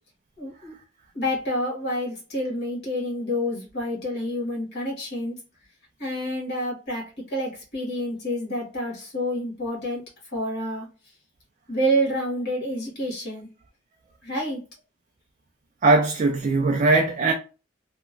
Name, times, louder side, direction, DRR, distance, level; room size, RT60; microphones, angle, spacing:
voice 1, 0.4-0.7 1.1-5.4 6.0-10.0 10.3-10.9 11.7-13.5 14.2-14.6, equal, 60° left, 1.3 m, -28 dB
voice 2, 15.8-17.3, right 3 dB, 40° right, 0.3 m, -20 dB
2.9 x 2.1 x 2.3 m
head